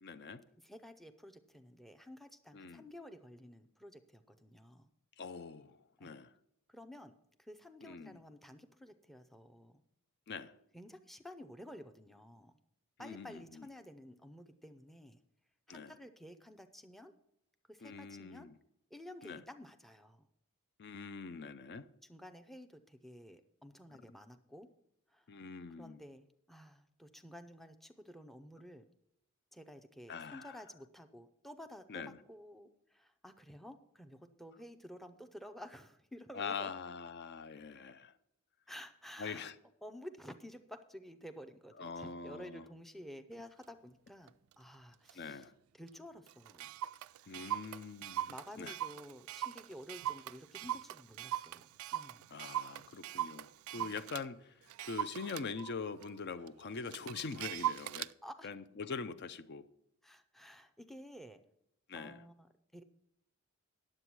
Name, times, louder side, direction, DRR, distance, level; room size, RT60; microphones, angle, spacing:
voice 1, 0.0-0.4 2.5-2.8 5.2-6.3 7.8-8.2 10.3-10.5 13.0-13.7 15.7-15.9 17.8-18.5 19.2-19.4 20.8-21.9 25.3-26.0 30.1-30.6 31.9-32.2 36.3-38.1 39.2-39.6 41.8-42.6 45.1-45.5 47.3-48.3 48.6-48.8 52.3-58.1 58.4-59.7 61.9-62.2, left 5 dB, 50° left, 0.5 m, -43 dB
voice 2, 0.6-4.9 6.0-6.2 6.7-9.8 10.7-12.5 13.0-15.2 15.7-17.1 17.7-18.5 18.9-20.3 22.1-24.7 25.1-25.3 25.8-28.9 29.5-36.7 38.7-39.5 39.8-45.5 45.8-46.7 48.3-51.7 51.9-52.3 58.0-58.5 60.0-61.4 61.9-62.8, equal, ahead, 0.5 m, -52 dB
Clock, 43.6-43.7 44.3-44.5 45.1-45.2 45.4-45.5 45.9-46.0 46.3-54.2 54.7-58.1, right 12 dB, 70° right, 0.3 m, -41 dB
9.8 x 7.8 x 6.0 m
head